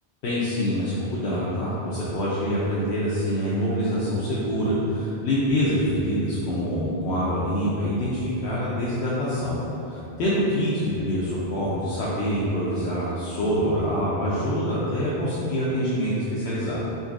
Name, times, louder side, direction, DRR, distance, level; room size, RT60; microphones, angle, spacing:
voice 1, 0.2-9.6 9.9-16.9, equal, 75° left, -9 dB, 0.8 m, -25 dB
3.8 x 2.5 x 2.4 m, 2.9 s
omnidirectional pair, 1.1 m